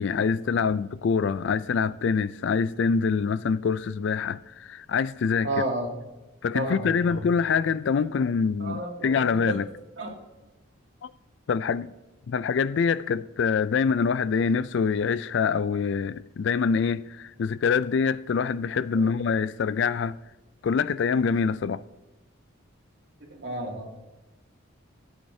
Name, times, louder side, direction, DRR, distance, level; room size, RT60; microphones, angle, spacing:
voice 1, 0.0-5.5 6.4-9.7 11.0-11.1 11.5-11.9 12.3-20.2 20.6-21.8, left 5 dB, 60° left, 0.3 m, -25 dB
voice 2, 5.4-5.9 6.5-7.3 8.0-8.2 8.6-9.6 10.0-10.1 18.9-19.1 23.2-24.1, right 1 dB, 60° right, 2.3 m, -32 dB
15.5 x 8.6 x 2.7 m
head